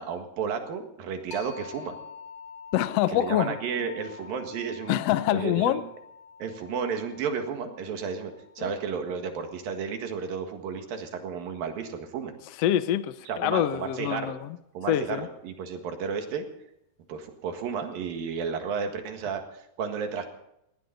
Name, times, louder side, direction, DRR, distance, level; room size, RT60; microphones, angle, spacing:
voice 1, 0.0-2.0 3.1-5.0 5.3-5.8 6.4-8.3 8.6-12.4 13.3-14.3 14.8-16.5 17.1-20.3, right 6 dB, 85° right, 3.5 m, -32 dB
sound 1, 1.3-10.7, left 5 dB, 45° left, 1.2 m, -48 dB
voice 2, 2.7-3.6 4.9-5.8 8.6-8.7 12.6-14.6 14.9-15.3, left 12 dB, 85° left, 1.4 m, -25 dB
19.5 x 18.0 x 4.0 m
omnidirectional pair, 4.0 m